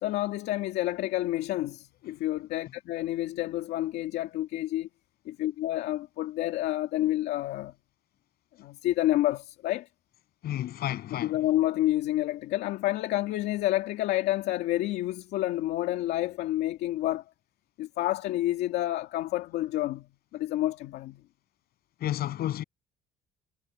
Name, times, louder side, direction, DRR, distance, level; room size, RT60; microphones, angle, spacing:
voice 1, 0.0-4.9 5.3-7.7 8.6-9.9 11.2-17.2 17.8-21.2, left 15 dB, 85° left, 2.2 m, -29 dB
voice 2, 10.4-11.4 22.0-22.6, left 12 dB, 65° left, 7.5 m, -31 dB
cardioid pair, 110°, 17 cm